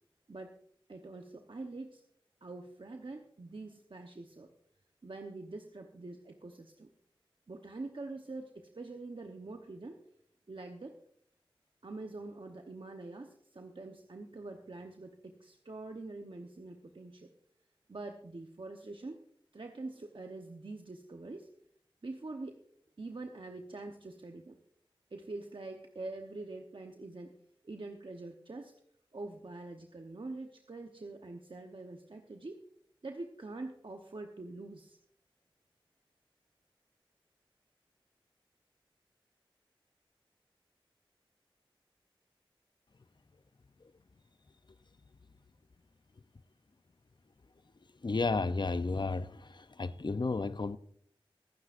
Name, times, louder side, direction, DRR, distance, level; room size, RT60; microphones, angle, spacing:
voice 1, 0.9-2.0 2.4-4.5 5.0-6.9 7.5-10.0 10.5-10.9 11.8-17.3 17.9-19.2 19.5-21.5 22.0-22.6 23.0-24.6 25.1-27.3 27.6-28.7 29.1-32.6 33.0-35.0, right 2 dB, 65° right, 0.9 m, -45 dB
voice 2, 48.0-50.8, left 3 dB, 55° left, 0.6 m, -32 dB
24.5 x 9.6 x 2.5 m
wide cardioid pair, 45°, 9 cm